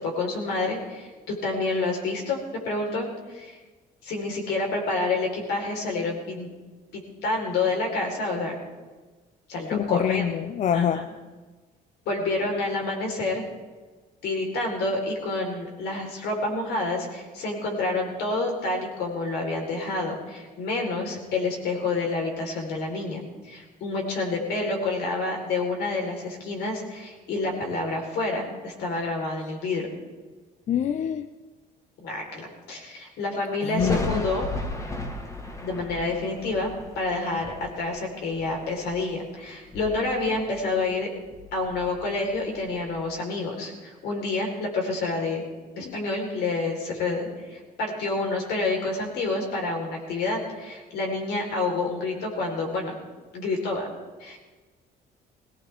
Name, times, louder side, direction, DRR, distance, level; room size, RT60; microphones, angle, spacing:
voice 1, 0.0-2.4 2.6-3.6 4.0-6.5 6.9-8.5 9.5-10.2 10.7-11.0 12.1-13.4 14.2-29.9 32.0-34.5 35.6-41.1 41.5-45.4 45.8-52.9 53.3-53.9 54.2-54.4, left 3 dB, 80° left, 1 dB, 3.9 m, -28 dB
voice 2, 9.7-11.0 30.7-31.3 33.7-34.2, left 9 dB, 45° left, 12 dB, 0.5 m, -25 dB
Thunder, 33.8-39.2 39.6-41.0 41.3-43.0, left 2 dB, 20° left, 1.5 m, -36 dB
19.0 x 17.5 x 3.5 m, 1.3 s
cardioid pair, 110°, 17 cm